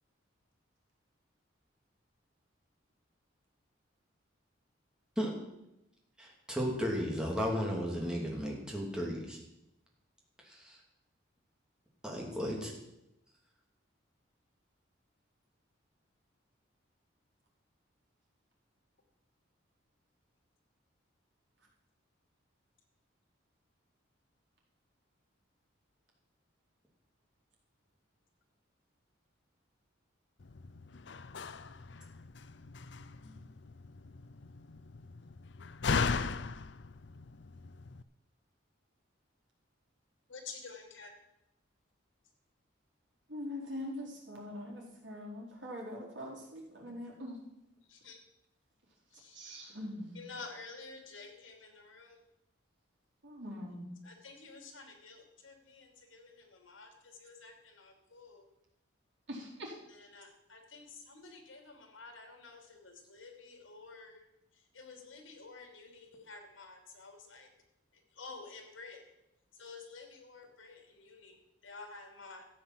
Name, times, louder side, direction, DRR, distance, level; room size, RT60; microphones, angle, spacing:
voice 1, 6.2-9.4 10.4-10.8 12.0-12.7, equal, 5° right, -2 dB, 2.7 m, -34 dB
Slam, 30.4-38.0, left 5 dB, 65° left, 0.6 m, -38 dB
voice 2, 40.3-41.2 47.9-48.2 49.1-49.4 50.1-52.2 54.0-58.5 59.9-64.2 64.7-67.5 68.1-69.0 69.6-72.4, left 4 dB, 85° left, 4 dB, 2.8 m, -51 dB
voice 3, 43.3-47.4 49.3-50.2 53.2-53.8 59.3-59.8, left 1 dB, 70° right, -3 dB, 4.3 m, -43 dB
14.0 x 8.0 x 7.6 m, 0.89 s
head